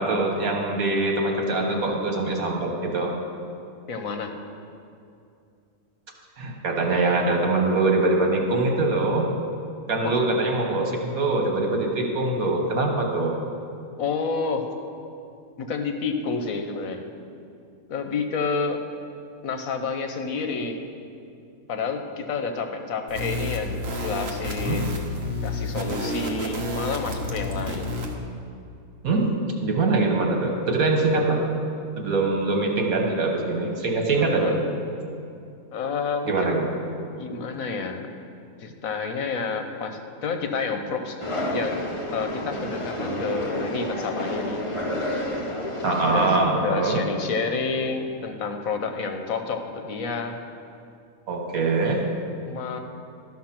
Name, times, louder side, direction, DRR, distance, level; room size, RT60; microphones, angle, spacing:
voice 1, 0.0-3.1 6.4-9.3 9.9-13.3 24.6-24.8 29.0-29.3 29.6-31.4 32.0-34.6 36.3-36.7 45.8-47.0 51.3-52.0, right 2 dB, 80° right, 1 dB, 1.8 m, -23 dB
voice 2, 3.9-4.3 10.0-10.1 14.0-14.6 15.6-17.0 17.9-18.8 19.4-20.8 21.7-23.7 24.0-24.9 25.4-27.9 34.1-34.6 35.7-36.5 37.2-38.1 38.6-41.2 41.5-41.8 42.1-44.6 46.0-50.4 52.4-52.8, left 4 dB, 75° left, 5 dB, 1.2 m, -29 dB
sound 1, 23.1-28.1, left 1 dB, 50° right, 1.2 m, -30 dB
sound 2, 41.2-46.4, equal, 25° left, 1.0 m, -30 dB
12.5 x 5.8 x 5.9 m, 2.5 s
omnidirectional pair, 1.5 m